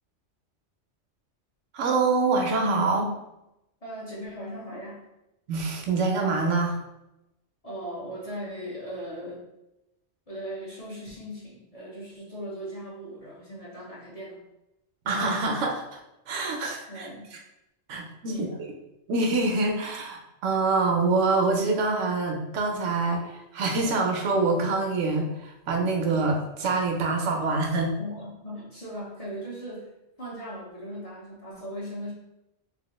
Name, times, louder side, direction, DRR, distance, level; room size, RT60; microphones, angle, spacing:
voice 1, 1.7-3.1 5.5-6.8 15.1-16.0 16.3-17.1 17.9-18.4 19.1-27.9, right 3 dB, 80° right, 2 dB, 1.0 m, -25 dB
voice 2, 3.8-5.1 7.6-9.4 10.3-14.4 16.9-17.3 18.3-18.6 28.0-29.9 30.2-32.1, equal, 35° left, -5 dB, 0.9 m, -38 dB
3.4 x 2.8 x 3.0 m, 0.90 s
omnidirectional pair, 1.2 m